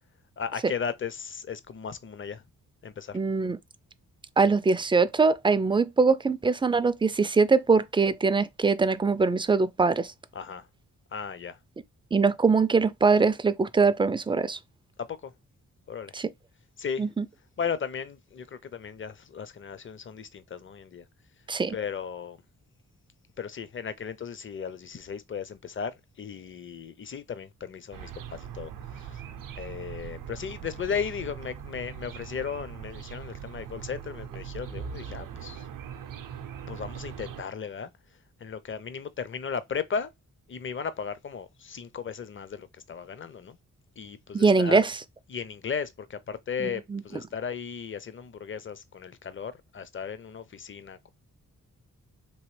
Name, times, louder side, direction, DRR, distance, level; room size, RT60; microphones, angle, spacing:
voice 1, 0.4-2.4 2.8-3.2 10.3-10.7 11.1-11.6 15.1-15.3 15.9-16.1 16.8-17.1 17.6-21.0 21.7-22.4 23.4-29.2 29.6-35.7 36.7-37.9 38.4-40.1 40.5-43.6 44.0-44.8 45.3-51.1, left 6 dB, 40° left, 0.6 m, -36 dB
voice 2, 3.1-3.6 4.4-10.1 12.1-14.6 16.1-16.3 17.0-17.2 21.5-21.7 44.3-45.0 46.6-47.0, right 4 dB, 15° right, 0.3 m, -22 dB
sound 1, 27.9-37.4, right 8 dB, 75° right, 0.5 m, -41 dB
3.0 x 2.8 x 3.1 m
cardioid pair, 75°, 33 cm